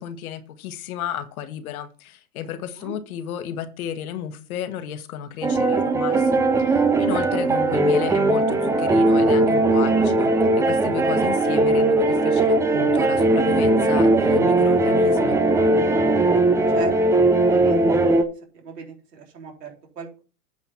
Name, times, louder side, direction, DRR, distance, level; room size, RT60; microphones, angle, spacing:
voice 1, 0.0-10.3 10.6-15.4, left 9 dB, 65° left, 1.6 m, -33 dB
sound 1, 5.4-18.2, right 2 dB, 5° right, 0.5 m, -19 dB
voice 2, 16.7-18.0 18.5-20.2, right 6 dB, 90° right, 4.0 m, -39 dB
9.2 x 5.2 x 5.7 m
hypercardioid pair, 125°, 46 cm